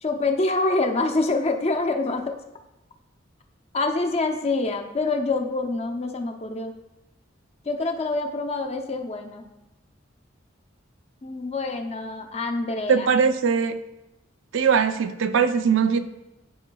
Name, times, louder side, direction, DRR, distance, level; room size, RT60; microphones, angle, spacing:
voice 1, 0.0-2.4 3.7-6.7 7.6-9.4 11.2-13.1, left 3 dB, 35° left, 4 dB, 0.6 m, -26 dB
voice 2, 12.9-13.8 14.5-16.0, right 6 dB, 70° right, 9 dB, 0.4 m, -20 dB
10.0 x 4.8 x 2.3 m, 0.95 s
head